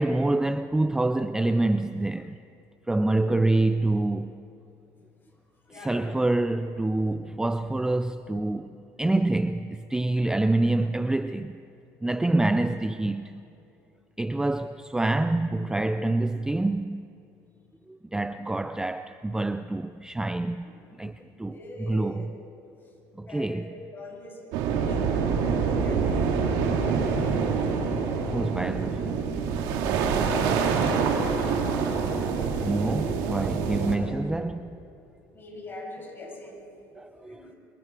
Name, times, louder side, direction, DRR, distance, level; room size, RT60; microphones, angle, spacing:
voice 1, 0.0-2.3 2.9-4.4 5.7-11.5 12.0-13.4 14.2-17.1 17.9-21.1 21.4-22.2 23.2-23.7 28.3-29.2 32.6-34.7 37.0-37.4, right 2 dB, 10° right, 0.5 m, -26 dB
voice 2, 3.0-3.4 5.6-6.2 12.1-12.4 18.4-18.5 21.0-21.1 21.5-22.3 23.2-27.4 29.7-30.4 35.3-36.7 37.2-37.5, left 1 dB, 30° left, 8.0 m, -43 dB
sound 1, 24.5-34.0, right 5 dB, 80° right, 3.1 m, -26 dB
28.5 x 24.5 x 4.8 m
supercardioid pair, 100°, 8 cm